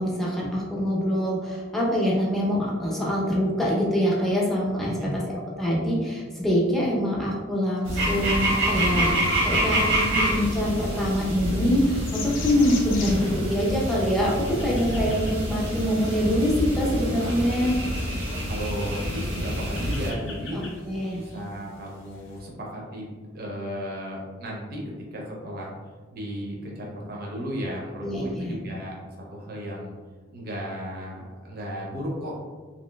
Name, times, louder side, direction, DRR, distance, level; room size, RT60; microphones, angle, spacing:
voice 1, 0.0-17.8 20.5-21.2 28.0-28.6, equal, ahead, -5 dB, 0.6 m, -25 dB
voice 2, 4.9-5.3 18.2-20.6 21.1-25.7 26.1-28.9 29.3-29.9 30.3-32.3, equal, 50° right, -3 dB, 0.7 m, -35 dB
sound 1, 7.8-20.1, equal, 80° right, 1.0 m, -27 dB
sound 2, 11.5-22.4, left 4 dB, 75° left, 0.6 m, -44 dB
3.0 x 2.8 x 2.2 m, 1.4 s
head